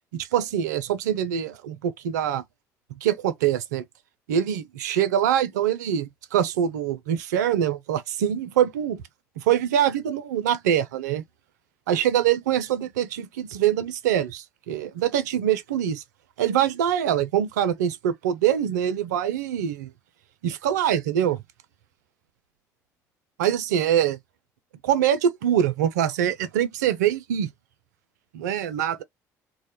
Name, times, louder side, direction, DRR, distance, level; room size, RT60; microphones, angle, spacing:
voice 1, 0.1-2.4 3.0-3.8 4.3-9.0 9.4-11.2 11.9-16.0 16.4-19.9 20.4-21.4 23.4-24.2 24.8-27.5 28.3-29.0, right 10 dB, 80° right, 0.4 m, -24 dB
2.1 x 2.1 x 2.9 m
hypercardioid pair, 55°, 9 cm